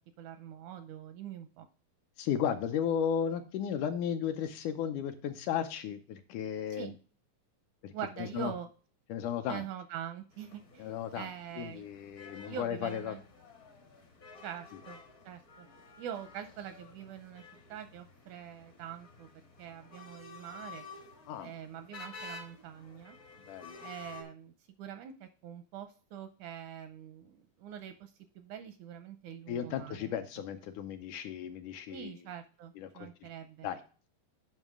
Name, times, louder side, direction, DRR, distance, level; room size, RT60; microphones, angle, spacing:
voice 1, 0.2-1.7 6.7-7.0 7.9-8.7 9.5-11.9 12.4-13.2 14.4-15.0 15.3-15.7 16.0-19.3 19.6-20.9 21.4-23.2 23.8-24.5 24.8-30.1 31.9-33.7, right 9 dB, 80° right, 9 dB, 1.8 m, -44 dB
voice 2, 2.2-7.0 7.8-8.5 9.1-9.7 10.8-11.3 11.6-13.2 21.3-21.5 23.5-23.8 29.5-32.2 32.8-33.3 33.6-33.8, left 8 dB, 80° left, 7 dB, 1.9 m, -35 dB
sound 1, 10.3-24.2, left 4 dB, 60° left, 0.8 m, -52 dB
9.1 x 5.4 x 3.6 m, 0.38 s
omnidirectional pair, 3.9 m